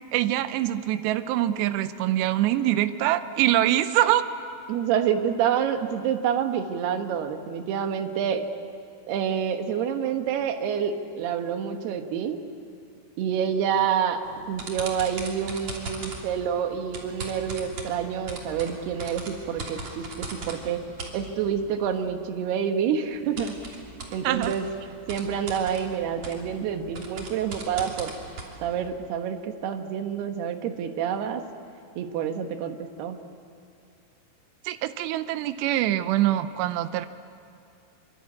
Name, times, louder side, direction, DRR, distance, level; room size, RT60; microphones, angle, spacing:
voice 1, 0.1-4.2 24.2-24.5 34.7-37.1, right 13 dB, 90° right, 11 dB, 2.4 m, -24 dB
voice 2, 4.7-8.5 9.1-12.4 13.2-20.8 21.1-23.6 24.1-24.7 25.1-28.1 28.6-31.4 32.0-33.2, right 8 dB, 65° right, 6 dB, 2.9 m, -28 dB
sound 1, 14.2-22.1 23.1-28.9, right 3 dB, 40° right, 3.6 m, -40 dB
25.5 x 24.5 x 8.5 m, 2.6 s
omnidirectional pair, 5.9 m